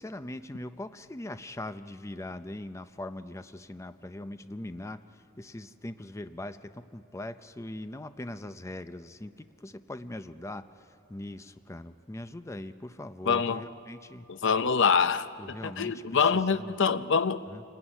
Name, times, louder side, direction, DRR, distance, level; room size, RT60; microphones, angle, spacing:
voice 1, 0.0-14.3 15.4-16.7 17.5-17.6, left 1 dB, 15° left, 0.5 m, -41 dB
voice 2, 13.3-13.6 14.3-17.4, left 6 dB, 60° left, 0.7 m, -25 dB
26.5 x 18.5 x 10.0 m
head